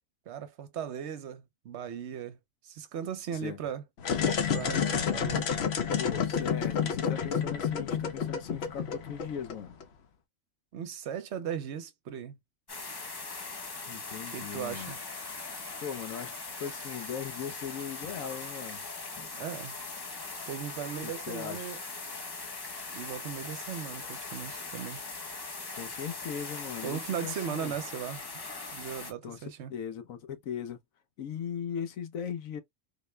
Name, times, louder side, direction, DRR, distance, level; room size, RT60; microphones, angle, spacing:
voice 1, 0.3-2.4 2.6-3.8 4.5-5.5 10.7-12.4 14.3-15.0 19.3-19.8 20.5-21.8 22.9-25.0 26.8-28.2 28.7-29.7, right 8 dB, 65° right, 0.9 m, -37 dB
sound 1, 4.0-9.8, left 7 dB, 60° left, 0.8 m, -30 dB
voice 2, 6.0-9.7 13.8-14.9 15.8-18.8 21.0-21.7 25.8-27.7 29.2-30.8 31.2-32.6, left 8 dB, 85° left, 1.2 m, -39 dB
sound 2, 12.7-29.1, left 3 dB, 30° left, 0.4 m, -40 dB
4.0 x 2.1 x 3.2 m
omnidirectional pair, 1.4 m